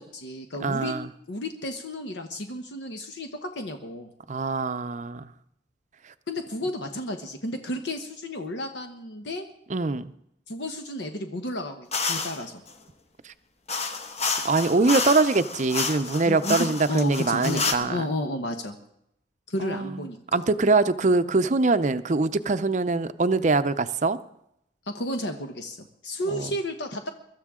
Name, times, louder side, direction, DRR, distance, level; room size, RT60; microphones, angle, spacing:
voice 1, 0.0-0.9 1.3-4.1 6.3-9.4 10.5-12.6 16.2-18.8 19.5-20.4 24.8-27.1, left 1 dB, 70° left, 1.1 m, -32 dB
voice 2, 0.6-1.1 4.3-5.3 9.7-10.1 13.2-13.3 13.8-13.9 14.4-18.1 19.6-24.2 26.3-26.5, right 3 dB, 40° right, 0.6 m, -23 dB
sound 1, 11.9-12.4 13.7-17.8, left 4 dB, 35° left, 1.1 m, -29 dB
23.0 x 13.0 x 3.7 m
head